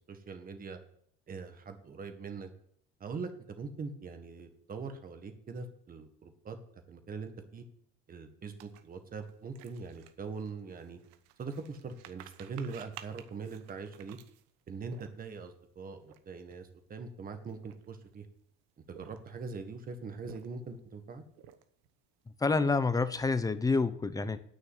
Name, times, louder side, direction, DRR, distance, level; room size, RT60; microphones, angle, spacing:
voice 1, 0.1-0.8 1.3-2.5 3.0-6.6 6.9-7.6 8.1-11.0 11.4-14.2 14.7-18.3 18.9-21.2, right 4 dB, 30° right, 7 dB, 1.7 m, -42 dB
sound 1, 8.6-15.5 16.0-16.2 16.4-16.7 17.3-18.2 18.8-19.5 20.0-20.8 21.3-21.9 22.3-23.1, right 11 dB, 85° right, 1.1 m, -54 dB
voice 2, 22.4-24.4, left 4 dB, 10° left, 13 dB, 0.7 m, -28 dB
9.0 x 6.7 x 8.5 m, 0.64 s
cardioid pair, 130°, 30 cm